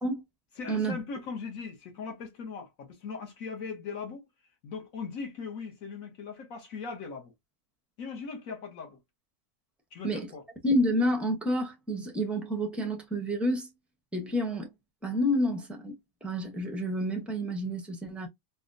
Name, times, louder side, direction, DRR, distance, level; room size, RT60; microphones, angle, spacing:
voice 1, 0.6-4.2 4.6-7.3 8.0-9.0 9.9-10.4, left 5 dB, 65° left, 1.4 m, -39 dB
voice 2, 10.6-13.7 14.1-14.7 15.0-18.3, equal, ahead, 0.4 m, -29 dB
4.1 x 2.1 x 2.5 m
omnidirectional pair, 1.6 m